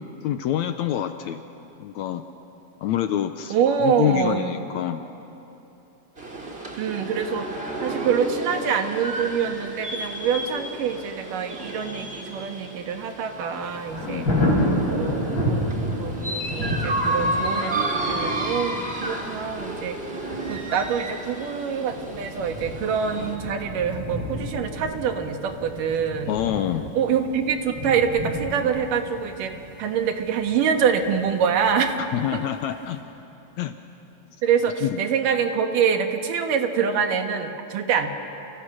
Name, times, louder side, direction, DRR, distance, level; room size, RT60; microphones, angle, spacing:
voice 1, 0.2-1.4 1.8-2.2 2.8-3.6 3.8-5.0 14.0-14.3 26.3-26.9 32.1-33.0 33.6-33.7 34.8-34.9, left 11 dB, 75° left, 8 dB, 1.8 m, -26 dB
voice 2, 3.5-4.5 6.8-7.5 7.8-14.3 14.9-20.0 20.2-26.4 26.9-29.5 29.8-32.0 32.3-32.4 34.4-38.1, right 7 dB, 80° right, 5 dB, 3.1 m, -25 dB
sound 1, 6.2-23.4, right 1 dB, 20° right, 2.5 m, -32 dB
Thunder, 13.6-32.4 32.8-32.9, left 1 dB, 25° left, 7.2 m, -31 dB
30.0 x 29.0 x 6.2 m, 2.9 s
omnidirectional pair, 3.8 m